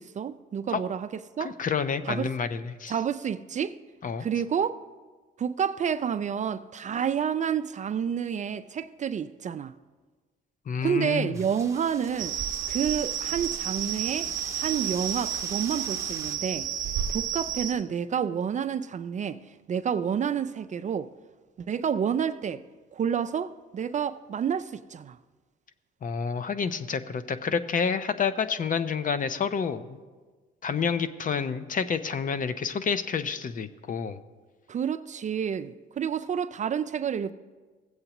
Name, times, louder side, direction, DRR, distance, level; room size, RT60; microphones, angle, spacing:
voice 1, 0.0-1.5 2.1-2.3 2.9-3.8 4.2-4.8 5.4-9.7 10.8-12.4 12.7-16.7 17.1-19.4 19.7-21.1 21.7-22.6 22.9-25.2 34.7-37.3, right 8 dB, 40° right, 0.4 m, -29 dB
voice 2, 1.4-2.9 4.0-4.3 10.7-11.3 26.0-30.0 30.6-34.2, left 6 dB, 45° left, 0.6 m, -29 dB
Wind, 11.3-16.4, right 3 dB, 15° right, 0.9 m, -45 dB
sound 1, 12.2-17.7, right 9 dB, 80° right, 0.8 m, -31 dB
17.0 x 7.9 x 3.0 m
cardioid pair, 90°, 20 cm